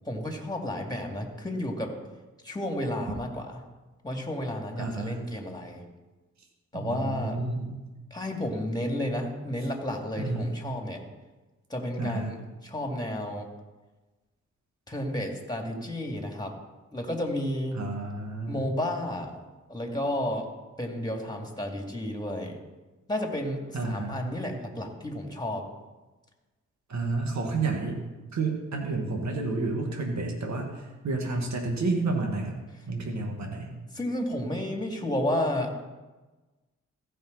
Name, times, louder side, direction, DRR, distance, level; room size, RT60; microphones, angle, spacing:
voice 1, 0.0-1.9 2.4-3.6 4.0-5.8 6.7-7.4 8.1-11.0 11.7-13.5 14.9-16.5 16.9-17.8 18.5-19.4 19.7-20.5 20.8-22.6 23.1-25.6 33.9-35.8, left 1 dB, 15° left, 2 dB, 2.6 m, -32 dB
voice 2, 4.8-5.3 6.7-7.8 10.2-10.4 12.0-12.3 17.7-18.6 23.7-24.2 26.9-28.0 28.3-32.6 32.9-33.8, right 3 dB, 65° right, 1 dB, 1.9 m, -30 dB
15.5 x 5.5 x 4.1 m, 1.2 s
supercardioid pair, 45°, 30 cm